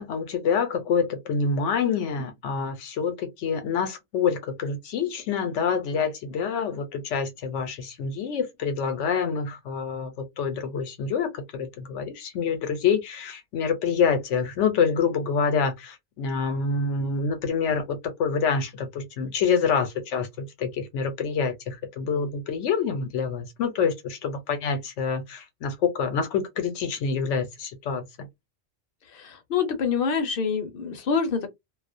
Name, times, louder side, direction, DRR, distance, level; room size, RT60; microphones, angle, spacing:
voice 1, 0.0-28.1, left 6 dB, 85° left, 1.0 m, -27 dB
voice 2, 29.0-31.5, left 6 dB, 60° left, 0.7 m, -26 dB
2.3 x 2.1 x 2.5 m
omnidirectional pair, 1.2 m